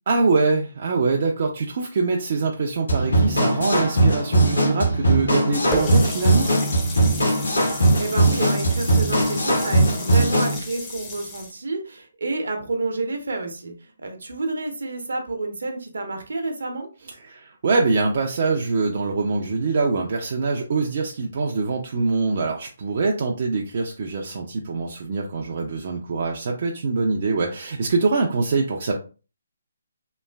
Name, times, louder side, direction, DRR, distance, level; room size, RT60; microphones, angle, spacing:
voice 1, 0.1-6.5 17.2-28.9, right 3 dB, 45° right, 0 dB, 0.4 m, -24 dB
sound 1, 2.9-10.6, right 1 dB, 80° left, 1.3 m, -20 dB
Water tap faucet, 5.7-11.5, left 1 dB, 15° left, 0.6 m, -33 dB
voice 2, 7.7-16.9, right 2 dB, 70° right, 4 dB, 0.8 m, -29 dB
3.0 x 2.4 x 2.3 m, 0.34 s
figure-of-eight pair, 140°, 0 cm